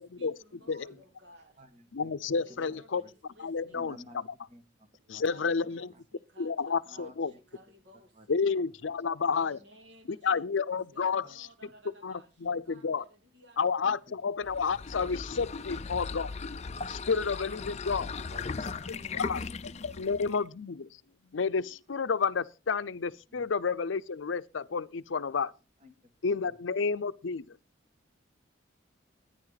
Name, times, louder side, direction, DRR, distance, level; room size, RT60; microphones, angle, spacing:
voice 1, 0.0-1.6 2.3-4.2 5.2-8.5 9.4-10.5 10.9-13.9 15.5-16.0 16.7-17.1 18.8-19.5 19.8-20.0, right 1 dB, 65° right, 2.9 m, -58 dB
voice 2, 0.6-1.0 1.6-2.1 2.5-3.1 3.7-4.2 4.5-6.0 6.8-7.4 8.1-8.3 9.3-9.4 11.2-11.5 13.8-14.1 15.9-16.2 18.0-18.7 23.3-23.5 25.8-26.1 26.4-26.6, equal, 35° right, 1.6 m, -54 dB
voice 3, 1.9-3.0 3.4-4.0 5.1-5.9 6.4-7.3 8.3-9.6 10.2-11.5 12.0-13.0 13.6-16.3 16.9-18.1 19.1-19.4 19.8-21.0 21.3-25.5 26.2-27.6, left 5 dB, 80° left, 0.6 m, -30 dB
sound 1, 14.4-20.5, left 4 dB, 35° left, 0.5 m, -38 dB
13.5 x 10.0 x 4.0 m
head